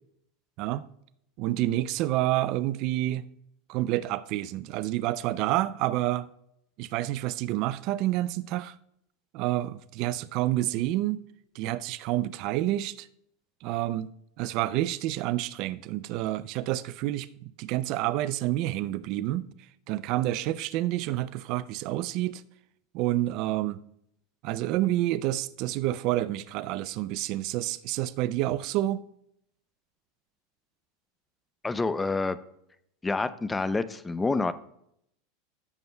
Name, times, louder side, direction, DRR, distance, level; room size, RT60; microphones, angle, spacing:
voice 1, 1.4-3.3 3.7-6.3 6.8-8.8 9.3-11.2 11.5-13.1 13.6-14.1 14.4-19.5 19.9-22.4 22.9-23.8 24.4-29.0, right 15 dB, 55° right, 0.4 m, -28 dB
voice 2, 31.6-32.4 33.0-34.5, left 3 dB, 15° left, 0.5 m, -27 dB
15.0 x 6.9 x 2.2 m
hypercardioid pair, 110°, 0 cm